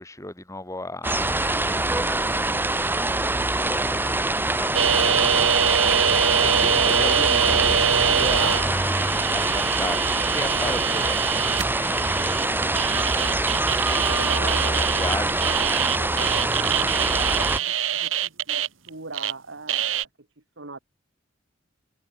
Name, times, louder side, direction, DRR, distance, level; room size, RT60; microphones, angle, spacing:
voice 1, 0.0-2.5 2.9-5.4 5.7-11.2 11.5-14.6 15.0-15.7, left 2 dB, 15° left, 2.9 m, -36 dB
sound 1, 1.0-17.6, right 2 dB, 10° right, 1.4 m, -24 dB
sound 2, 4.7-19.3 19.7-20.0, right 8 dB, 85° right, 2.0 m, -24 dB
voice 2, 14.0-20.1 20.6-20.8, right 3 dB, 65° right, 2.6 m, -40 dB
head